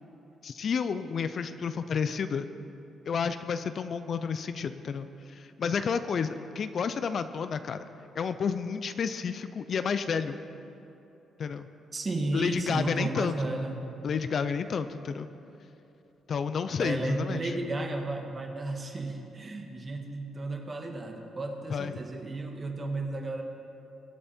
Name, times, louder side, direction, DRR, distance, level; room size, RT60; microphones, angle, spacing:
voice 1, 0.4-2.5 3.1-7.9 8.2-10.4 11.4-11.7 12.3-13.5 14.0-15.3 16.3-17.5 21.7-21.9, left 6 dB, 55° left, 11 dB, 0.5 m, -31 dB
voice 2, 11.9-13.9 16.8-23.4, right 2 dB, 30° right, 2 dB, 1.9 m, -33 dB
22.0 x 8.6 x 4.4 m, 2.9 s
cardioid pair, 90°, 0 cm